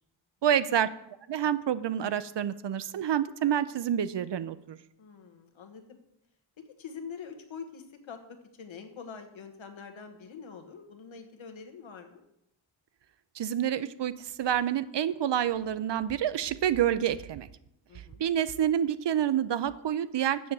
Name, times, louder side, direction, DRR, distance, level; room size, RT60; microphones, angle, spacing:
voice 1, 0.4-0.9 1.3-4.8 13.4-14.1 14.4-17.5 18.2-20.5, right 10 dB, 60° right, 15 dB, 0.6 m, -28 dB
voice 2, 5.0-6.0 6.8-8.2 8.5-12.2 17.9-18.2, left 6 dB, 70° left, 6 dB, 1.3 m, -45 dB
8.1 x 7.1 x 6.0 m, 0.80 s
wide cardioid pair, 110°, 48 cm